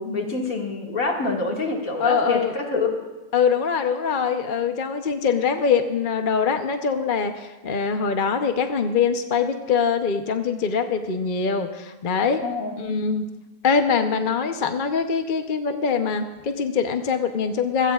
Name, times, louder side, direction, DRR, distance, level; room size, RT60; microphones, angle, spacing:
voice 1, 0.0-2.9 12.4-13.0, left 3 dB, 65° left, 0 dB, 2.5 m, -26 dB
voice 2, 2.0-2.5 3.3-12.4 12.8-13.3 13.6-17.9, left 6 dB, 40° left, 6 dB, 0.9 m, -23 dB
26.0 x 17.0 x 2.4 m, 1.1 s
omnidirectional pair, 1.5 m